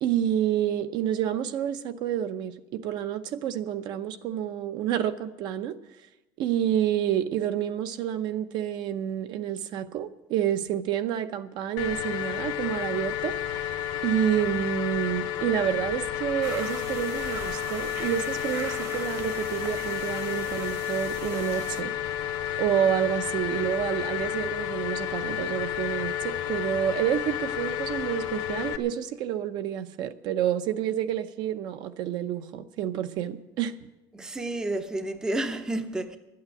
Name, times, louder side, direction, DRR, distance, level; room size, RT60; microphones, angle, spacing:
voice 1, 0.0-5.8 6.4-13.6 14.0-21.9 22.6-33.8, right 10 dB, 55° right, 0.7 m, -29 dB
sound 1, 11.8-28.8, left 11 dB, 60° left, 0.9 m, -31 dB
sound 2, 16.4-21.8, right 6 dB, 35° right, 1.1 m, -41 dB
voice 2, 34.1-36.2, right 1 dB, 5° right, 0.6 m, -30 dB
12.0 x 8.6 x 9.7 m
cardioid pair, 170°, 9 cm